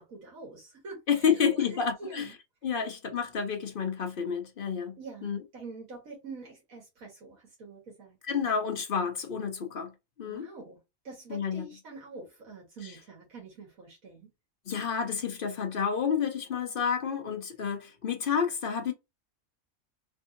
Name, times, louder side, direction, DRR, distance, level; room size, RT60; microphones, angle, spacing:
voice 1, 0.0-1.7 2.0-2.4 5.0-8.5 10.2-10.8 11.0-14.3, right 3 dB, 75° right, 1.7 m, -46 dB
voice 2, 1.1-2.3 2.6-5.4 8.3-9.9 10.2-10.4 11.3-11.6 12.8-13.0 14.7-18.9, left 6 dB, 50° left, 0.7 m, -30 dB
3.5 x 2.6 x 2.5 m
omnidirectional pair, 1.5 m